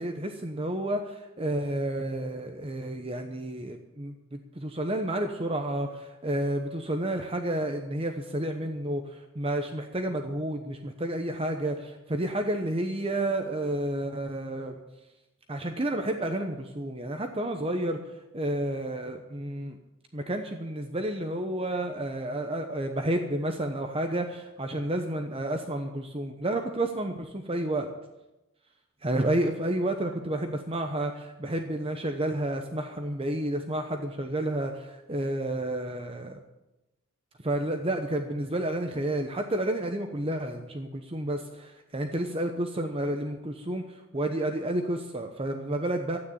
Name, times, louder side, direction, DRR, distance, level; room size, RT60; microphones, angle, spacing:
voice 1, 0.0-14.8 15.5-19.8 20.1-27.9 29.0-36.4 37.4-46.2, right 1 dB, 25° right, 5 dB, 0.9 m, -30 dB
13.0 x 9.4 x 8.7 m, 0.99 s
head